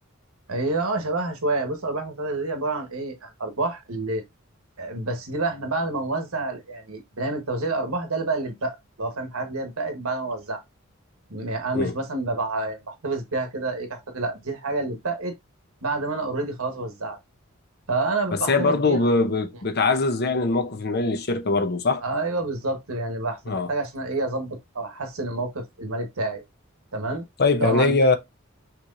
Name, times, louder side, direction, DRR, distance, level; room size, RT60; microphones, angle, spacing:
voice 1, 0.5-4.2 4.8-10.6 11.3-15.3 15.8-17.2 17.9-19.1 22.0-26.4 26.9-27.2 27.6-28.0, right 2 dB, 80° right, 1.2 m, -28 dB
voice 2, 18.5-22.0 23.5-23.7 27.4-28.2, left 3 dB, 50° left, 0.7 m, -22 dB
5.9 x 3.0 x 2.5 m
head